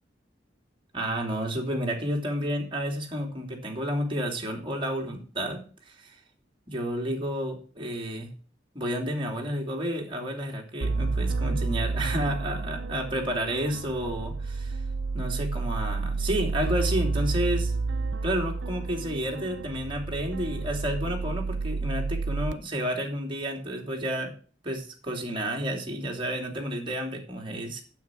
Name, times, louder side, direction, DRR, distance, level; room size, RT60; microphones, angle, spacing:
voice 1, 0.9-5.6 6.0-6.1 6.7-8.3 8.7-14.8 15.1-17.8 18.2-24.3 24.6-27.8, equal, 30° right, 0 dB, 3.1 m, -31 dB
sound 1, 10.8-22.5, right 3 dB, 80° right, 0.6 m, -30 dB
9.4 x 8.4 x 7.6 m, 0.38 s
head